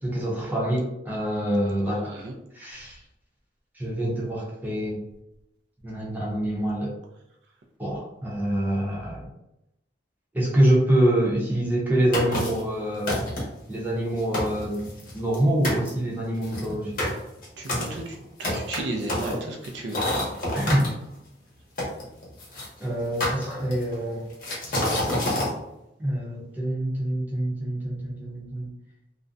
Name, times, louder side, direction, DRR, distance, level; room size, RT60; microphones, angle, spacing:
voice 1, 0.0-2.1 2.5-3.0 3.7-5.0 5.8-6.9 7.8-9.3 10.3-13.2 13.7-17.0 20.5-20.9 22.8-24.2 26.0-28.7, right 1 dB, 10° right, -5 dB, 0.6 m, -25 dB
voice 2, 1.8-2.3 17.6-20.0, right 2 dB, 80° right, 2 dB, 0.4 m, -34 dB
sound 1, 12.1-12.7 13.1-13.6 14.1-14.2 14.3-15.4 15.6-15.9 16.4-20.9 21.8-22.7 23.2-23.9 24.4-25.5, left 1 dB, 50° left, 0.7 m, -28 dB
2.4 x 2.1 x 2.5 m, 0.85 s
head